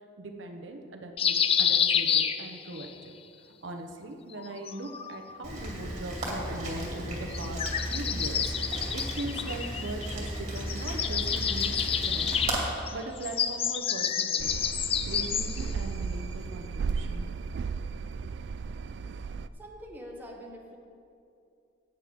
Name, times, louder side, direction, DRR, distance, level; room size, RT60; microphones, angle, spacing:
voice 1, 0.2-3.1 3.6-7.6 7.9-12.3 12.7-14.6 15.0-17.3, right 2 dB, 80° right, 4 dB, 0.9 m, -40 dB
sound 1, 1.2-2.9 4.3-5.4 7.3-10.3 10.6-15.7, left 8 dB, 30° left, 0.4 m, -29 dB
Rain, 5.4-12.6, right 1 dB, 35° right, 2.3 m, -35 dB
sound 2, 14.4-19.5, right 5 dB, 65° right, 0.3 m, -34 dB
voice 2, 19.2-20.8, equal, 10° right, -2 dB, 1.3 m, -45 dB
14.5 x 9.1 x 3.7 m, 2.6 s
head